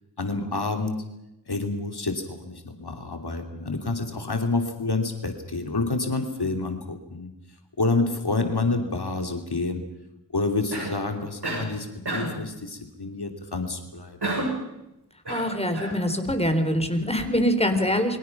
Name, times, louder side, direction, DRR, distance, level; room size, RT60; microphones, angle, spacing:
voice 1, 0.2-1.0 1.5-7.3 7.8-9.8 10.3-14.2, left 3 dB, 75° left, 5 dB, 2.8 m, -28 dB
Cough, 10.7-11.0 11.4-11.7 12.1-12.4 14.2-14.6 15.2-16.0, right 2 dB, 85° right, 7.8 m, -30 dB
voice 2, 15.3-18.2, equal, 15° left, 7 dB, 3.9 m, -24 dB
28.5 x 24.0 x 5.9 m, 0.88 s
wide cardioid pair, 50°, 39 cm